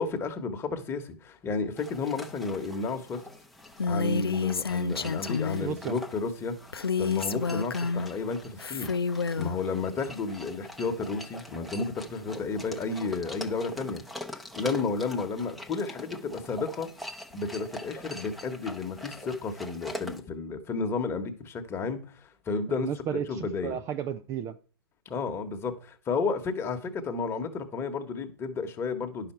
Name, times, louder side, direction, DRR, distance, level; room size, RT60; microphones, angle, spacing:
voice 1, 0.0-3.2 3.9-6.6 7.0-8.9 9.4-14.0 14.5-16.9 17.3-22.9 23.3-23.7 25.0-29.3, left 4 dB, 20° left, 1.3 m, -32 dB
sound 1, 1.8-20.2, left 1 dB, ahead, 0.8 m, -44 dB
Female speech woman speaking, 3.8-5.7 6.7-8.1 8.6-9.6, left 5 dB, 90° left, 0.5 m, -29 dB
voice 2, 5.6-6.0 22.7-24.6, right 9 dB, 25° right, 0.4 m, -33 dB
10.5 x 5.9 x 4.4 m
figure-of-eight pair, 115°, 12 cm